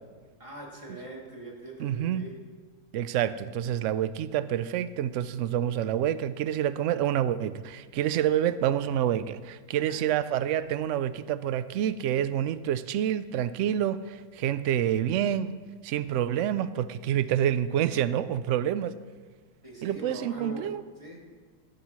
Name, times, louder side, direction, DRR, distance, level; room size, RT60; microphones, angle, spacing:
voice 1, 0.4-2.3 9.7-10.1 19.6-20.7 21.0-21.2, right 1 dB, 20° right, -3 dB, 2.6 m, -42 dB
voice 2, 1.8-2.3 2.9-19.0 19.8-20.8, right 10 dB, 65° right, 14 dB, 0.7 m, -28 dB
18.0 x 12.5 x 3.1 m, 1.5 s
omnidirectional pair, 1.7 m